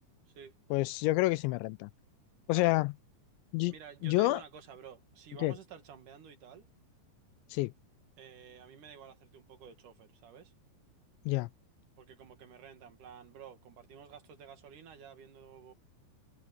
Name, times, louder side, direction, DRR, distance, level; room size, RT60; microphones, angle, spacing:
voice 1, 0.7-1.9 2.5-2.9 3.5-3.7 4.0-4.4 5.4-5.5 7.5-7.7 11.3-11.5, left 20 dB, 85° left, 2.7 m, -28 dB
voice 2, 3.7-6.7 8.2-10.5 12.0-15.7, right 8 dB, 55° right, 2.9 m, -51 dB
omnidirectional pair, 5.4 m